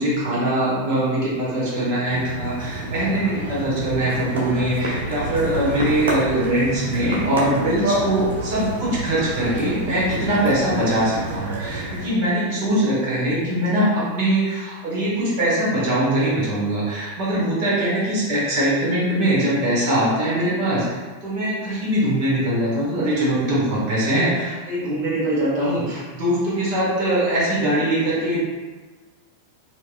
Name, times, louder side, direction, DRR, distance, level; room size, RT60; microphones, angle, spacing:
voice 1, 0.0-28.4, right 1 dB, 45° right, -7 dB, 1.4 m, -22 dB
sound 1, 2.1-12.1, right 1 dB, 65° right, 0.7 m, -28 dB
4.6 x 2.2 x 2.3 m, 1.3 s
figure-of-eight pair, 90°, 0 cm